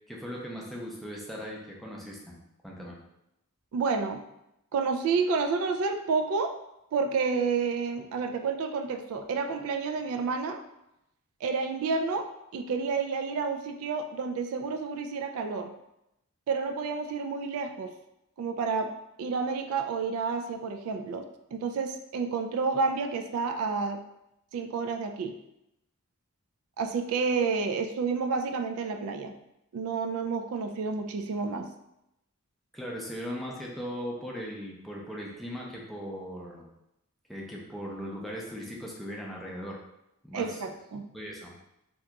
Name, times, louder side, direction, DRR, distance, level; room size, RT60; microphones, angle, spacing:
voice 1, 0.1-2.3 2.6-3.0 32.7-36.7 37.3-39.8 40.2-40.6 41.1-41.5, equal, ahead, -3 dB, 0.5 m, -38 dB
voice 2, 3.7-4.2 4.7-6.5 6.9-10.6 11.4-12.3 12.5-15.7 16.5-17.9 18.4-18.9 19.2-24.0 24.5-25.4 26.8-29.3 29.7-31.7 40.3-41.0, right 4 dB, 75° right, 7 dB, 0.3 m, -30 dB
2.9 x 2.3 x 3.5 m, 0.85 s
head